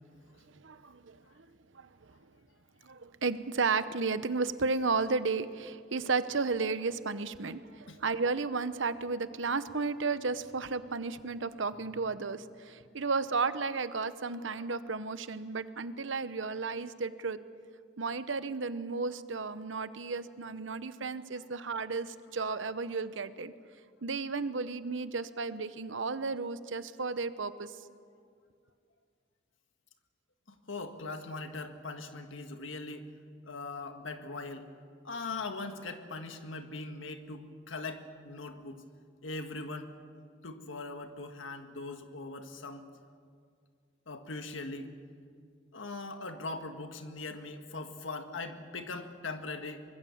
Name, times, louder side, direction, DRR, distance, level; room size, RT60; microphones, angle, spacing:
voice 1, 0.5-1.5 1.7-2.1 2.8-17.4 18.0-23.5 24.0-27.8, right 4 dB, 80° right, 13 dB, 0.9 m, -33 dB
voice 2, 30.5-33.1 33.4-34.7 35.0-38.8 39.2-39.9 40.4-42.8 44.1-44.9 45.7-49.8, left 3 dB, 85° left, 6 dB, 1.7 m, -40 dB
24.5 x 21.0 x 7.2 m, 2.1 s
head